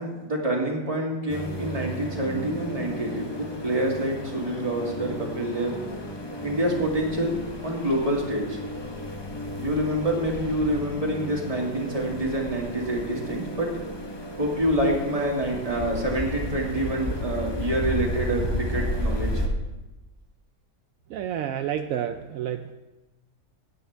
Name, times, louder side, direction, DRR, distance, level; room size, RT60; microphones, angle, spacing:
voice 1, 0.0-5.8 6.4-8.6 9.6-13.7 14.4-19.4, right 1 dB, 20° right, -2 dB, 2.1 m, -27 dB
sound 1, 1.3-19.5, left 1 dB, 25° left, 0.6 m, -33 dB
voice 2, 21.1-22.7, right 9 dB, 75° right, 8 dB, 0.8 m, -30 dB
17.0 x 9.0 x 3.4 m, 1.1 s
omnidirectional pair, 1.9 m